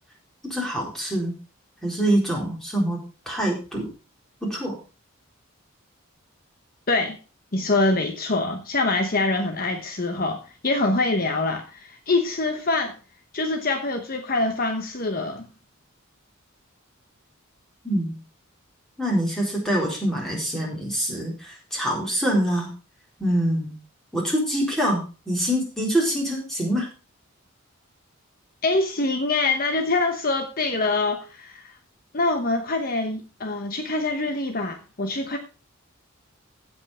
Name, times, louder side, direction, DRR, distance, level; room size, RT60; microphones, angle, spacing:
voice 1, 0.4-1.4 1.8-3.9 4.4-4.8 17.8-18.2 19.0-22.7 23.2-23.7 24.1-26.9, equal, ahead, -3 dB, 4.3 m, -25 dB
voice 2, 7.5-10.4 10.6-12.9 13.3-15.4 28.6-31.7 32.1-35.4, left 2 dB, 45° left, 5 dB, 1.0 m, -24 dB
16.0 x 5.4 x 5.0 m, 0.34 s
head